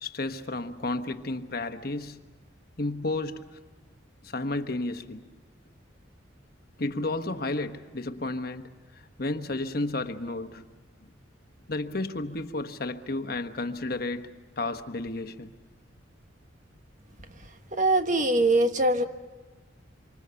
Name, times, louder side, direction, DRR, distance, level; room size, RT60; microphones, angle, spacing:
voice 1, 0.0-2.2 2.8-3.6 4.2-5.2 6.8-10.6 11.0-11.1 11.7-14.3 14.6-15.5, left 2 dB, 50° left, 1.2 m, -32 dB
voice 2, 17.7-19.0, right 2 dB, 40° right, 1.3 m, -22 dB
27.0 x 25.0 x 7.0 m
head